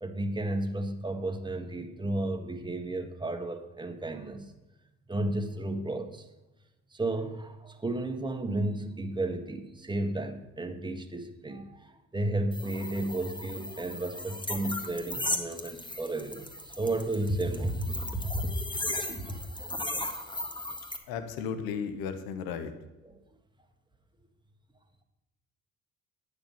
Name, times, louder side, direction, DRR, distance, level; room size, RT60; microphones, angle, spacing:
voice 1, 0.0-4.5 5.1-6.3 6.9-11.9 12.1-19.8 23.0-23.2, right 1 dB, 10° right, 5 dB, 1.6 m, -33 dB
sound 1, 12.5-21.0, left 1 dB, 10° left, 1.6 m, -37 dB
voice 2, 21.1-22.7, left 6 dB, 70° left, 9 dB, 1.2 m, -34 dB
9.7 x 9.0 x 5.6 m, 1.0 s
hypercardioid pair, 55°, 37 cm